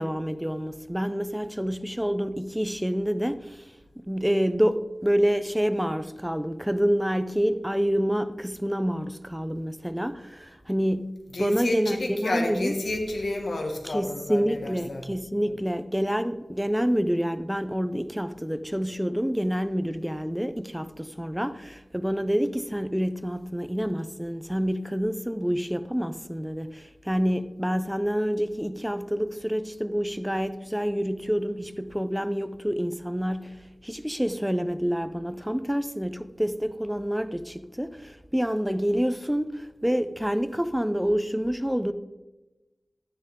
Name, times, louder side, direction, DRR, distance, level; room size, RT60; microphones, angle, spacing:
voice 1, 0.0-3.6 4.1-11.1 11.4-12.7 13.8-33.5 33.8-41.9, equal, 5° right, 0.6 m, -27 dB
voice 2, 11.3-15.1, left 2 dB, 80° left, 1.9 m, -30 dB
12.0 x 10.5 x 3.8 m
wide cardioid pair, 65°, 0 cm